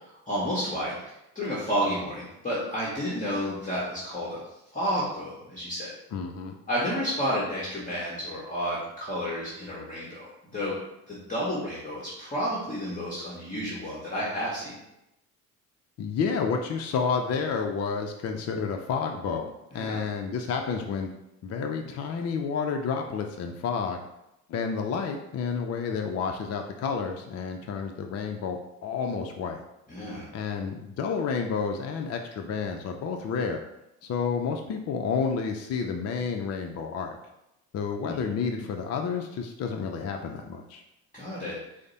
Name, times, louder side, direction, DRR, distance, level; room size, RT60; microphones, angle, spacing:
voice 1, 0.3-1.0 1.3-4.4 4.7-5.9 6.7-10.7 11.1-14.8 19.7-20.0 29.9-30.3 38.0-38.2 41.1-41.6, equal, 20° left, -6 dB, 1.4 m, -31 dB
voice 2, 6.1-6.5 16.0-19.5 19.7-21.1 21.4-24.0 24.5-29.6 30.3-33.6 34.0-37.2 37.7-40.8, left 5 dB, 45° left, 4 dB, 0.5 m, -30 dB
4.9 x 2.1 x 4.1 m, 0.86 s
hypercardioid pair, 65°, 36 cm